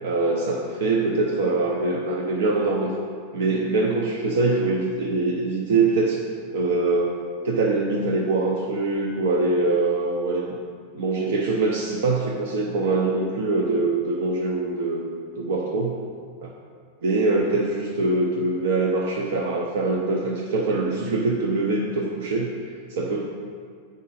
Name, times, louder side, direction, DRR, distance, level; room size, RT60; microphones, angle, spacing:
voice 1, 0.0-2.9 3.3-6.2 6.5-7.1 7.4-10.5 10.9-16.0 16.4-16.5 17.0-22.5 22.9-23.3, right 3 dB, 90° right, -1 dB, 0.7 m, -23 dB
7.5 x 5.1 x 4.2 m, 2.1 s
supercardioid pair, 175°, 0 cm